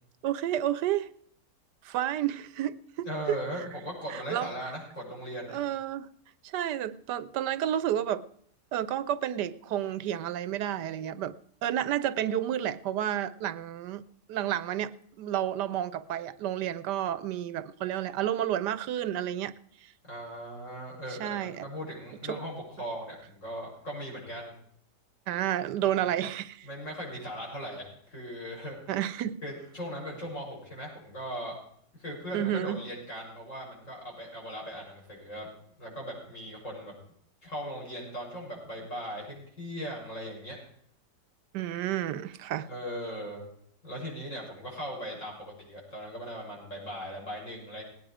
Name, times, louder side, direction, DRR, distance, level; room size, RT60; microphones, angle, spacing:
voice 1, 0.2-1.1 1.8-3.4 4.1-4.5 5.5-6.1 6.4-8.2 8.7-11.3 11.6-19.5 21.2-21.7 22.3-22.4 25.3-26.7 28.9-29.4 32.3-32.8 41.5-42.7, right 11 dB, 85° right, 16 dB, 1.3 m, -31 dB
voice 2, 3.0-5.6 20.0-24.5 26.6-28.8 29.4-31.6 32.0-35.5 35.8-36.9 37.4-40.6 42.6-43.4 43.8-47.8, equal, 45° left, -3 dB, 7.1 m, -39 dB
19.0 x 9.6 x 4.9 m, 0.64 s
omnidirectional pair, 1.8 m